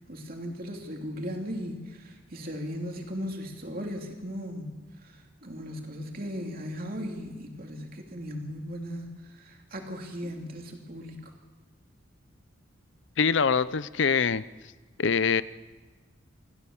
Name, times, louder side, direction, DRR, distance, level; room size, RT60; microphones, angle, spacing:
voice 1, 0.1-4.8 5.0-11.3, equal, 45° right, 2 dB, 3.0 m, -37 dB
voice 2, 13.2-14.4 15.0-15.4, left 6 dB, 60° left, 17 dB, 0.6 m, -24 dB
27.5 x 14.0 x 7.3 m, 1.3 s
head